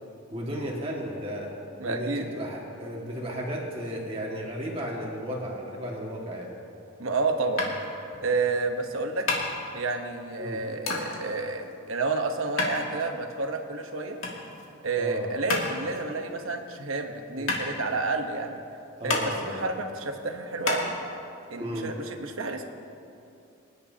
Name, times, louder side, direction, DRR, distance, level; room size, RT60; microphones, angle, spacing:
voice 1, 0.3-1.5 1.8-6.6 10.4-10.6 15.0-15.3 17.4-17.5 19.0-19.7 21.6-21.9, equal, 25° right, -2 dB, 1.8 m, -34 dB
voice 2, 1.8-2.3 7.0-7.8 8.2-9.3 9.7-14.2 14.8-18.6 19.0-20.9 21.5-22.7, right 3 dB, 70° right, 5 dB, 1.0 m, -30 dB
sound 1, 7.6-20.8, left 3 dB, 70° left, 2.2 m, -33 dB
25.0 x 10.5 x 2.8 m, 2.7 s
head